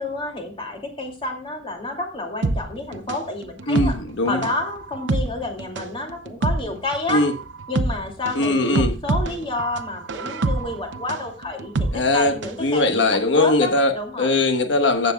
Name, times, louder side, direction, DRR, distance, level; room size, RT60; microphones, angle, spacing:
voice 1, 0.0-3.9 4.3-7.2 7.7-13.0 13.3-14.3, left 2 dB, 30° left, 2 dB, 2.6 m, -29 dB
sound 1, 2.4-12.6 12.9-13.0, right 2 dB, 80° right, 0.7 m, -26 dB
voice 2, 3.7-4.4 7.1-7.3 8.3-8.9 11.9-12.3 12.6-13.9 14.2-15.1, left 2 dB, 70° left, 6 dB, 1.2 m, -20 dB
14.5 x 8.0 x 2.3 m, 0.34 s
head